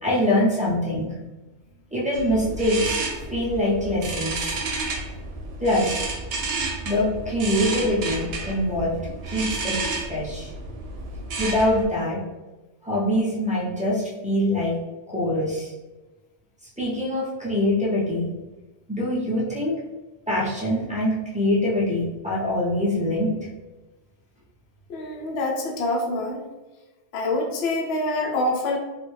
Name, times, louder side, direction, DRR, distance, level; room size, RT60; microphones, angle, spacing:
voice 1, 0.0-1.1 1.9-3.0 3.3-4.5 5.6-6.1 6.8-8.9 9.3-9.8 10.1-10.5 11.4-12.2 12.8-14.8 15.1-15.7 16.8-18.3 18.9-19.7 20.3-23.3, left 1 dB, 10° right, -7 dB, 0.5 m, -24 dB
sound 1, 2.1-11.9, right 3 dB, 75° right, 0.9 m, -31 dB
voice 2, 24.9-26.4 27.1-28.8, left 2 dB, 65° left, 0 dB, 0.8 m, -26 dB
3.2 x 2.1 x 3.1 m, 1.1 s
omnidirectional pair, 1.2 m